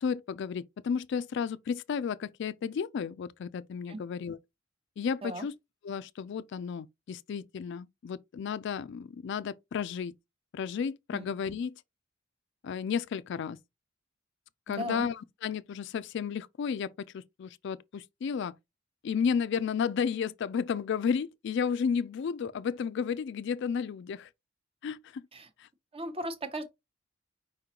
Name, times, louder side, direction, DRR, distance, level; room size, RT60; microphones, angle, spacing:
voice 1, 0.0-4.4 5.0-5.5 5.8-10.1 10.5-11.8 12.6-13.6 14.7-18.5 19.0-24.3 24.8-25.3 25.6-25.7, left 6 dB, 65° left, 0.3 m, -33 dB
voice 2, 14.8-15.1 25.3-25.5 25.9-26.7, right 1 dB, 30° right, 0.8 m, -36 dB
5.0 x 3.7 x 2.8 m
head